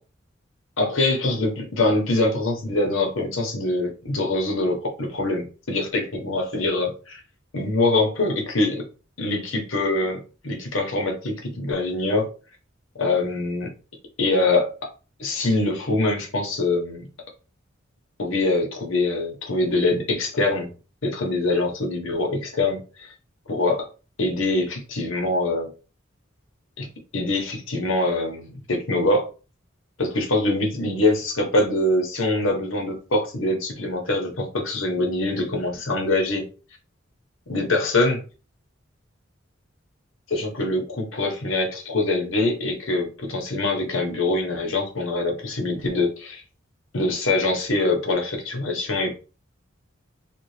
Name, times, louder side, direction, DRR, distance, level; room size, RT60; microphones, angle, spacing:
voice 1, 0.8-7.2 7.5-8.9 9.2-12.3 12.9-13.7 14.2-14.9 15.2-17.1 18.2-20.7 21.0-23.1 23.5-23.9 24.2-25.7 26.8-26.9 27.1-29.3 30.0-36.5 37.5-38.2 40.3-46.4 46.9-49.1, left 2 dB, 85° left, 1.2 m, -24 dB
3.4 x 2.5 x 3.2 m
head